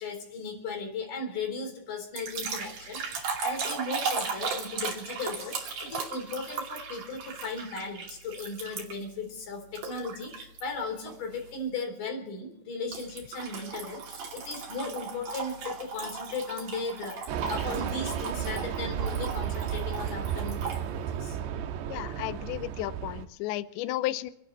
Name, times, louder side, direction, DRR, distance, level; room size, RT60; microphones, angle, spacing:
voice 1, 0.0-21.4, left 3 dB, 50° left, 3 dB, 5.1 m, -37 dB
sound 1, 2.2-9.1 9.8-10.6 11.1-11.4 12.9-20.8, right 5 dB, 50° right, 3.6 m, -37 dB
Fixed-wing aircraft airplane, 17.3-23.3, right 9 dB, 80° right, 3.1 m, -33 dB
voice 2, 21.9-24.3, left 15 dB, 80° left, 12 dB, 3.0 m, -33 dB
29.5 x 11.0 x 4.2 m, 0.81 s
omnidirectional pair, 5.2 m